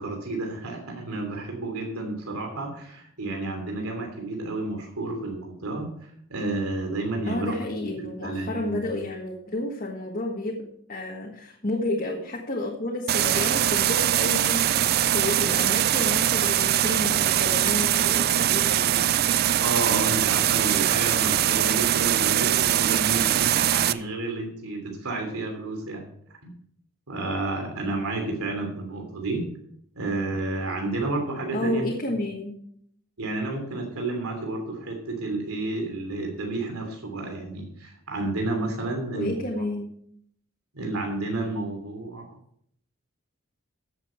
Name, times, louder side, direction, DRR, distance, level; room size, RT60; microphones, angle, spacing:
voice 1, 0.0-5.9 6.3-7.5 8.0-9.0 19.6-26.0 26.4-26.5 27.1-29.5 29.9-31.8 33.2-39.4 40.7-42.3, right 2 dB, 85° right, 2 dB, 3.0 m, -31 dB
voice 2, 7.3-19.1 31.5-32.6 39.1-40.0, left 2 dB, 40° left, -2 dB, 1.6 m, -31 dB
sound 1, 13.1-23.9, right 11 dB, 45° right, 0.3 m, -22 dB
14.0 x 7.8 x 4.5 m, 0.67 s
head